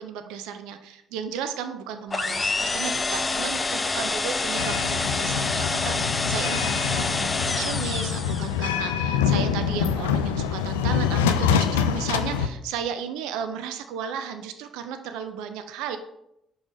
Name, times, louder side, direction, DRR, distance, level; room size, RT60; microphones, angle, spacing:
voice 1, 0.0-16.0, right 8 dB, 75° right, 9 dB, 0.5 m, -34 dB
sound 1, 2.1-8.6, left 3 dB, 30° left, 0.6 m, -27 dB
sound 2, 4.6-12.5, left 7 dB, 85° left, 0.4 m, -25 dB
5.2 x 4.8 x 5.0 m, 0.81 s
hypercardioid pair, 50°, 0 cm